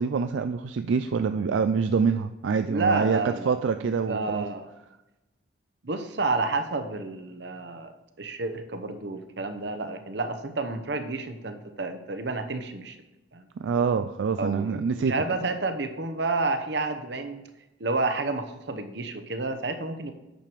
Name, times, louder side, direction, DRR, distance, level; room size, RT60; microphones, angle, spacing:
voice 1, 0.0-4.4 13.6-15.1 15.4-15.5, right 5 dB, 85° right, 9 dB, 0.4 m, -26 dB
voice 2, 2.6-3.5 3.8-4.7 5.8-7.9 8.2-13.0 13.3-13.4 14.4-17.4 17.8-20.1, right 3 dB, 65° right, 8 dB, 0.9 m, -30 dB
9.1 x 6.8 x 4.6 m, 0.98 s
head